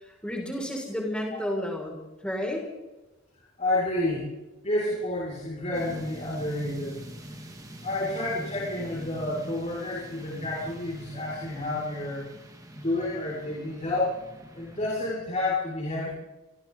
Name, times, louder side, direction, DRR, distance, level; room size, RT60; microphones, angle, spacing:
voice 1, 0.0-2.0 2.2-2.6, left 1 dB, 5° left, -1 dB, 6.5 m, -31 dB
voice 2, 3.6-4.3 4.6-7.1 7.8-12.3 12.7-14.2 14.5-16.1, left 1 dB, 35° left, -6 dB, 6.5 m, -30 dB
sound 1, 5.7-15.1, equal, 15° right, 2.2 m, -44 dB
30.0 x 26.0 x 4.2 m, 1.1 s
head